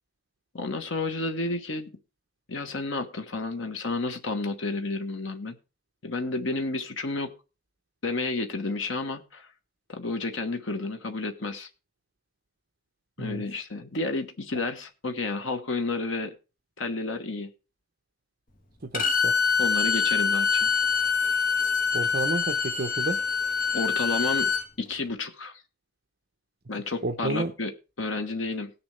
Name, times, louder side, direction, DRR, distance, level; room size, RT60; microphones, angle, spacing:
voice 1, 0.5-1.9 2.5-5.6 6.0-7.3 8.0-9.5 9.9-11.7 13.2-16.3 16.8-17.5 19.6-20.7 23.7-24.5 24.8-25.6 26.7-28.7, left 3 dB, 75° left, 1.2 m, -31 dB
Bowed string instrument, 18.9-24.6, left 5 dB, 45° left, 1.6 m, -25 dB
voice 2, 18.9-19.4 21.9-23.2 27.0-27.5, right 3 dB, 50° right, 0.8 m, -31 dB
18.5 x 6.9 x 3.3 m
head